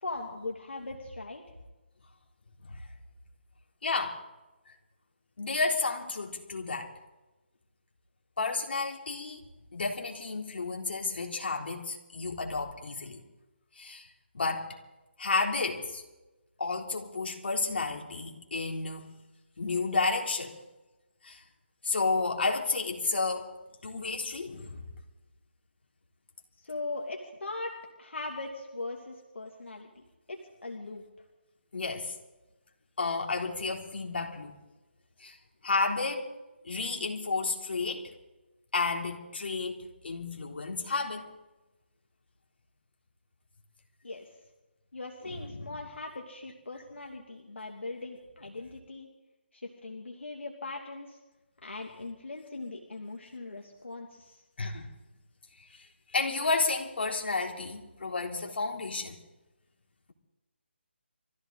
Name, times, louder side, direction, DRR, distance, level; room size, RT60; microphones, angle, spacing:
voice 1, 0.0-1.4 26.6-30.0 30.3-31.0 44.0-44.3 44.9-49.1 49.5-51.2 51.6-54.4, left 2 dB, 80° left, 1 dB, 2.6 m, -40 dB
voice 2, 3.8-4.2 5.4-6.9 8.4-9.5 9.7-13.2 13.8-14.1 14.3-14.8 15.2-16.0 16.6-19.2 19.6-20.5 21.2-21.4 21.8-23.5 23.8-24.8 31.7-32.1 33.0-34.6 35.2-35.4 35.6-36.3 36.6-38.0 38.7-41.3 45.5-45.7 54.6-54.9 56.1-59.1, left 3 dB, 60° left, 0 dB, 3.6 m, -31 dB
23.5 x 15.0 x 4.0 m, 1.0 s
figure-of-eight pair, 160°, 6 cm